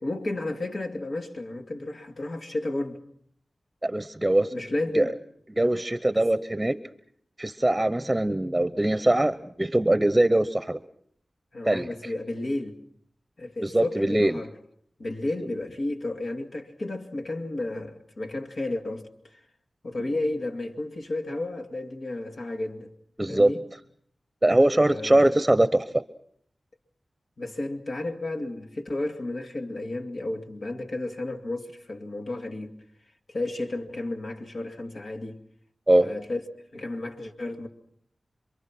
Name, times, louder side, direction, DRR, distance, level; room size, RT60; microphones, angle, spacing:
voice 1, 0.0-3.0 4.5-5.2 5.6-5.8 6.1-6.2 11.5-12.8 13.4-14.5 15.0-19.4 19.8-22.9 23.3-23.6 24.7-25.3 27.4-32.8 33.3-35.4 36.0-36.4 36.7-37.7, left 2 dB, 65° left, 2.5 m, -32 dB
voice 2, 3.8-4.5 4.9-5.0 5.6-6.8 7.4-10.8 11.6-11.9 13.6-14.4 23.2-23.5 24.4-25.9 35.9-36.1, right 1 dB, 20° right, 0.9 m, -22 dB
27.5 x 23.5 x 6.1 m
cardioid pair, 50°, 0 cm